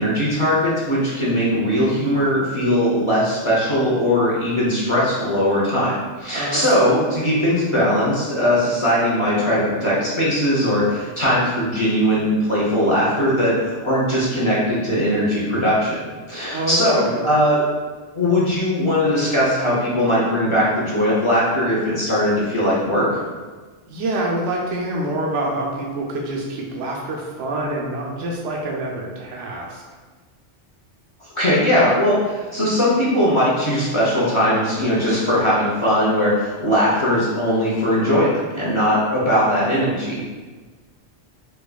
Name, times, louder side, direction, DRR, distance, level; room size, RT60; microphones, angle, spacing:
voice 1, 0.0-17.6 18.1-23.2 31.3-40.3, equal, 30° left, -8 dB, 0.7 m, -19 dB
voice 2, 6.3-7.0 16.5-17.2 23.9-29.8, right 1 dB, 85° right, -1 dB, 0.9 m, -26 dB
4.3 x 2.4 x 2.3 m, 1.4 s
omnidirectional pair, 1.2 m